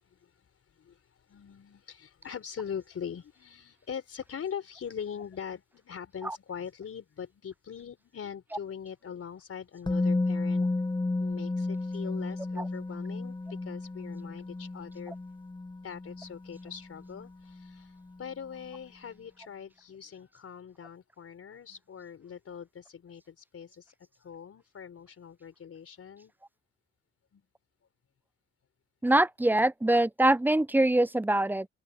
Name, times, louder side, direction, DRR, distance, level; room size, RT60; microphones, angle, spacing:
voice 1, 0.0-10.7 11.2-15.1 15.8-26.3 27.3-27.4, left 7 dB, 50° left, 4.4 m, -42 dB
Musical instrument, 9.9-17.8 18.0-18.2, left 2 dB, 15° left, 1.1 m, -33 dB
voice 2, 29.0-31.7, right 1 dB, 5° right, 0.5 m, -23 dB
open air
cardioid pair, 90°, 30 cm